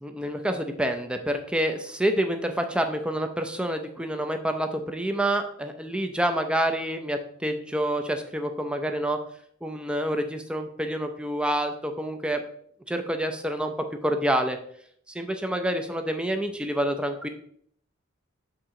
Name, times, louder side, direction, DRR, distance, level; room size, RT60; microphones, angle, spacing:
voice 1, 0.0-9.2 9.6-12.4 12.9-13.7 14.0-14.6 15.1-17.3, right 1 dB, 5° right, 5 dB, 0.5 m, -27 dB
6.6 x 4.6 x 3.7 m, 0.65 s
head